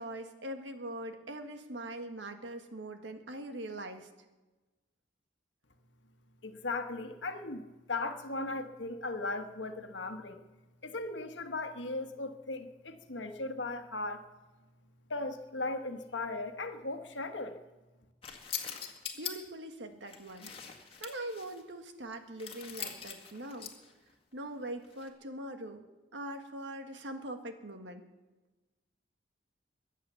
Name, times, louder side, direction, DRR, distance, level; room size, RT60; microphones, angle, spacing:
voice 1, 0.0-4.1 19.1-20.5 21.0-23.7 24.3-25.8 26.1-28.1, right 1 dB, 85° right, 6 dB, 1.6 m, -42 dB
voice 2, 6.4-10.4 10.8-14.2 15.1-17.6, left 2 dB, 90° left, 7 dB, 1.4 m, -37 dB
sound 1, 18.2-19.3 20.0-21.6 22.4-23.9 24.8-25.1, left 8 dB, 30° left, 1.9 m, -42 dB
23.0 x 8.5 x 7.1 m, 1.2 s
head